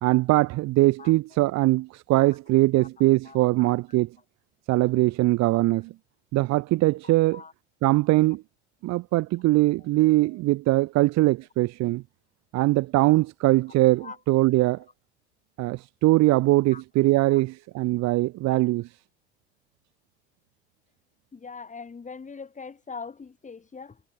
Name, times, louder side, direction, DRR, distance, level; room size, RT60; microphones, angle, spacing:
voice 1, 0.0-4.1 4.7-5.9 6.3-7.4 7.8-8.4 8.8-12.0 12.5-14.8 15.6-18.9, right 19 dB, 50° right, 2.1 m, -22 dB
voice 2, 1.0-1.4 2.8-2.9 3.2-3.4 7.0-7.5 9.8-9.9 10.2-10.4 14.0-14.2 16.3-16.4 16.7-16.8 17.3-17.4 21.3-24.0, left 5 dB, 20° left, 4.0 m, -42 dB
figure-of-eight pair, 70°, 34 cm